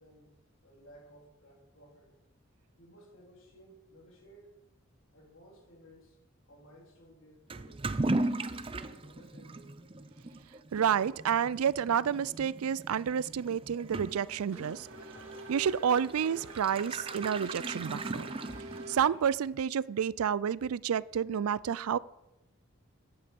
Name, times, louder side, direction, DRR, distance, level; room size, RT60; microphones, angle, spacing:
voice 1, 0.0-2.2 2.8-4.5 5.1-6.2 6.5-9.8, equal, 65° left, -1 dB, 3.9 m, -57 dB
Toilet flush / Liquid, 7.5-19.1, right 2 dB, 25° right, 0.5 m, -38 dB
voice 2, 10.7-14.9 15.5-18.3 18.9-22.0, right 8 dB, 85° right, 21 dB, 0.4 m, -29 dB
Race car auto racing / Accelerating revving vroom, 14.1-19.5, right 1 dB, 65° right, 2.6 m, -47 dB
15.0 x 9.6 x 5.3 m, 0.95 s
head